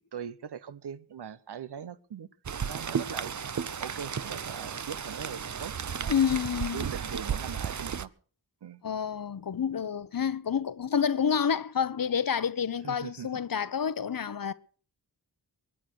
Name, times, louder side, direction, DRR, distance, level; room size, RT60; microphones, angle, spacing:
voice 1, 0.1-2.3 2.7-3.4 3.8-6.1 6.7-8.1 8.6-8.8 12.8-13.3, right 7 dB, 75° right, 0.9 m, -41 dB
Rain, 2.5-8.1, right 7 dB, 45° right, 0.7 m, -34 dB
voice 2, 6.1-6.8 8.8-14.5, left 7 dB, 55° left, 0.9 m, -28 dB
22.0 x 8.9 x 6.2 m
cardioid pair, 55°, 41 cm